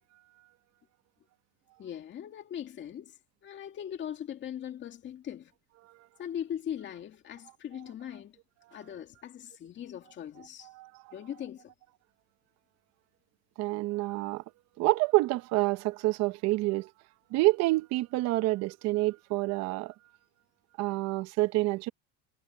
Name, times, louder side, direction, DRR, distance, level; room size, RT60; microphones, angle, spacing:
voice 1, 1.8-5.5 6.2-8.4 8.7-10.7 11.1-11.7, left 9 dB, 30° left, 2.3 m, -40 dB
voice 2, 13.6-14.4 14.8-16.9 17.3-19.9 20.8-21.9, right 20 dB, 50° right, 1.0 m, -27 dB
supercardioid pair, 140°, 35 cm